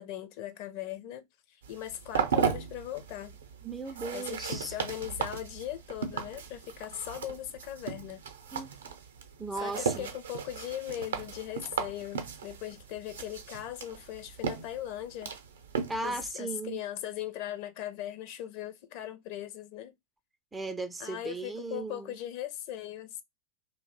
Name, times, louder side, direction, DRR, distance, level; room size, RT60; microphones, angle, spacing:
voice 1, 0.0-3.4 4.1-8.2 9.6-15.3 16.0-19.9 21.0-23.2, left 12 dB, 45° left, 0.5 m, -39 dB
sound 1, 1.6-16.3, right 7 dB, 65° right, 0.5 m, -36 dB
voice 2, 3.6-4.7 8.5-8.7 9.4-10.1 15.9-16.8 20.5-22.2, right 3 dB, 10° right, 0.3 m, -37 dB
2.6 x 2.1 x 3.8 m
figure-of-eight pair, 90°, 0 cm